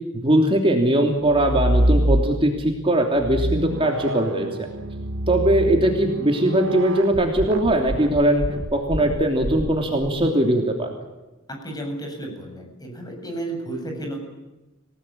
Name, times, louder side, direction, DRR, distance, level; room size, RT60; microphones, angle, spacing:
voice 1, 0.2-4.7 5.3-8.4 8.7-10.9, right 1 dB, 25° right, 2 dB, 3.1 m, -20 dB
sound 1, 1.3-2.7 3.2-10.1, right 1 dB, 75° right, 1.8 m, -26 dB
voice 2, 11.6-14.2, right 1 dB, 20° left, 2 dB, 7.4 m, -32 dB
28.0 x 18.5 x 8.8 m, 1.1 s
head